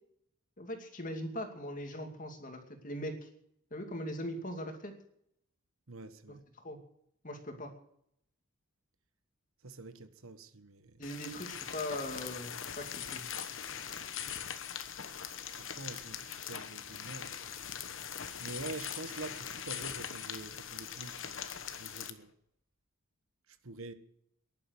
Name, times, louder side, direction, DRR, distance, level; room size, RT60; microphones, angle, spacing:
voice 1, 0.6-3.3 3.7-4.9 6.6-6.8 7.2-7.7 11.0-13.2, left 1 dB, 35° left, 2.6 m, -40 dB
voice 2, 5.9-6.4 9.6-11.1 15.6-17.3 18.4-21.4 21.7-22.3 23.5-23.9, right 3 dB, 70° right, 1.3 m, -46 dB
sound 1, 11.0-22.1, left 8 dB, 60° left, 1.2 m, -41 dB
11.5 x 11.5 x 9.7 m
head